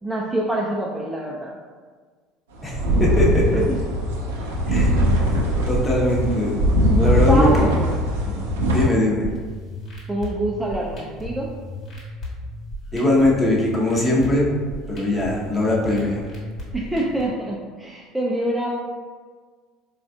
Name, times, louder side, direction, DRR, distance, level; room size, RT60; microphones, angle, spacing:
voice 1, 0.0-1.5 3.7-3.8 4.7-4.9 6.9-7.7 10.1-11.5 16.7-18.7, right 1 dB, 10° right, -3 dB, 0.4 m, -26 dB
voice 2, 2.6-3.6 4.7-5.0 5.7-6.6 7.0-7.7 8.3-8.4 8.7-9.3 12.9-14.6 14.9-16.2, left 1 dB, 15° left, -4 dB, 0.8 m, -21 dB
sound 1, 2.6-8.9, equal, 70° right, 0.5 m, -20 dB
sound 2, 9.2-17.2, left 1 dB, 40° left, 1.2 m, -35 dB
4.0 x 2.4 x 2.3 m, 1.5 s
figure-of-eight pair, 65°, 0 cm